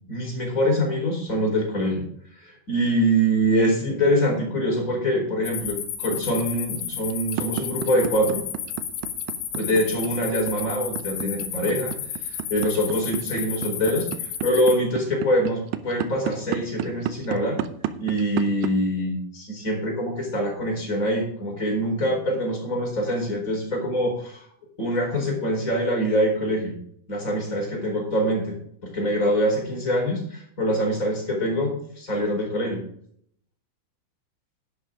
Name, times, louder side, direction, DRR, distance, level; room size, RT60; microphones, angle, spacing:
voice 1, 0.1-2.0 2.3-8.4 9.5-17.6 18.0-24.5 24.8-26.8 27.1-28.6 28.8-32.8, equal, 15° left, 0 dB, 3.8 m, -24 dB
sound 1, 5.4-14.7, left 9 dB, 85° left, 4.5 m, -33 dB
sound 2, 6.1-18.7, right 13 dB, 85° right, 2.6 m, -30 dB
11.0 x 11.0 x 3.7 m, 0.65 s
omnidirectional pair, 5.9 m